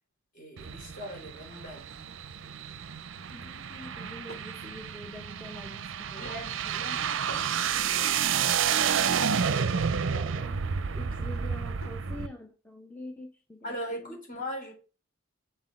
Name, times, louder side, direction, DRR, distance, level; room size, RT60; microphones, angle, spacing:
voice 1, 0.3-1.9 6.1-8.5 10.1-10.3 13.6-14.7, equal, 40° left, 3.6 m, -41 dB
sound 1, 0.6-12.3, right 7 dB, 60° right, 0.5 m, -30 dB
voice 2, 3.3-5.9 6.1-6.4 6.6-6.7 9.0-9.9 10.2-10.6 10.9-14.2, left 1 dB, 10° left, 0.7 m, -46 dB
Drawer open or close / Wood, 3.6-4.5 6.2-7.6 8.1-9.3 10.6-12.1, left 2 dB, 70° left, 3.1 m, -55 dB
6.0 x 4.5 x 6.3 m
head